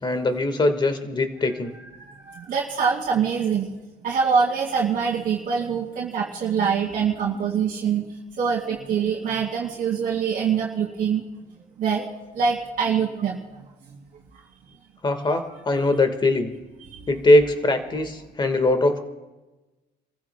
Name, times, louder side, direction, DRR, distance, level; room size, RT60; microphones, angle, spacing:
voice 1, 0.0-1.7 15.0-16.5 17.1-19.0, left 2 dB, 25° left, 8 dB, 1.6 m, -21 dB
voice 2, 2.0-3.7 4.0-8.1 8.4-11.2 11.8-12.1 12.3-13.4 15.3-15.4 16.9-17.1, right 6 dB, 55° right, -4 dB, 2.3 m, -24 dB
29.0 x 15.0 x 2.3 m, 1.1 s
cardioid pair, 110°, 17 cm